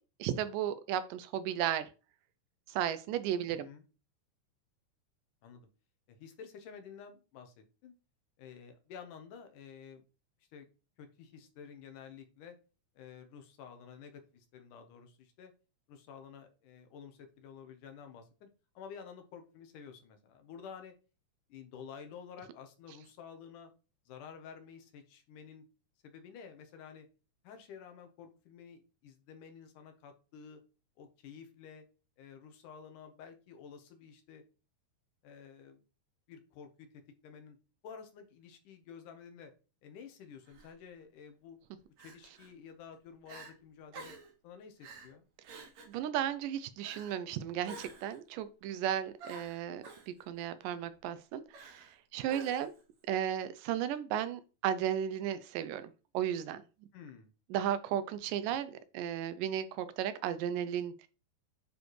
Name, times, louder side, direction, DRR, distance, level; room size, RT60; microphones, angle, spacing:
voice 1, 0.2-1.9 2.7-3.7 45.9-52.7 53.1-56.6 57.5-61.1, right 10 dB, 90° right, 2.3 m, -35 dB
voice 2, 3.5-3.9 5.4-5.7 6.1-7.9 8.4-10.0 10.5-10.7 11.0-12.6 13.0-15.5 15.9-18.5 18.8-20.9 21.5-23.7 24.1-25.6 26.0-27.1 27.4-30.6 31.0-31.8 32.2-34.4 35.2-35.8 36.3-37.6 37.8-39.5 39.8-41.6 42.0-44.2 44.4-45.3 56.9-57.3, left 7 dB, 75° left, 2.5 m, -51 dB
Crying sobbing, 40.5-40.7 42.0-42.5 42.9-43.0 43.3-43.5 43.9-44.3 44.8-45.1 45.4-46.0 46.8-47.2 47.6-48.2 49.2-50.1 51.5-52.0 52.3-52.8, right 3 dB, 60° right, 2.7 m, -50 dB
9.5 x 4.2 x 3.2 m
omnidirectional pair, 3.8 m